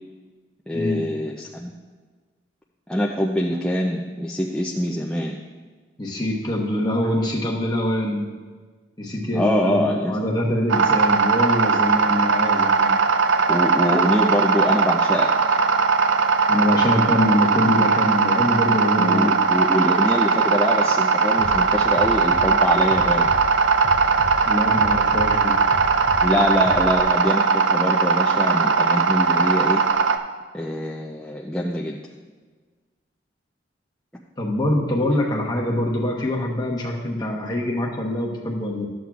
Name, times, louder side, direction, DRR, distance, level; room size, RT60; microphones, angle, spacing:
voice 1, 0.7-1.7 2.9-5.4 9.3-10.2 13.5-15.3 19.0-23.3 26.2-29.8 30.5-32.0, left 1 dB, 5° left, -3 dB, 0.4 m, -24 dB
voice 2, 6.0-8.3 9.0-13.0 16.5-19.4 24.5-25.5 34.4-38.9, left 1 dB, 20° left, -2 dB, 1.0 m, -24 dB
sound 1, 10.7-30.2, right 5 dB, 80° right, 0.4 m, -19 dB
Bass drum, 21.4-27.0, right 1 dB, 35° right, 0.8 m, -35 dB
12.5 x 7.5 x 2.4 m, 1.4 s
head